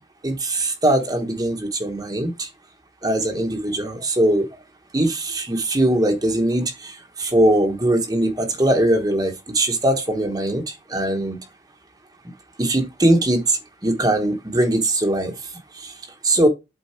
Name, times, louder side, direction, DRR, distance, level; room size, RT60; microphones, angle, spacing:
voice 1, 0.2-2.5 3.0-4.5 4.9-11.4 12.6-15.9 16.2-16.5, right 1 dB, 20° right, 1.0 m, -21 dB
8.3 x 3.8 x 4.4 m
head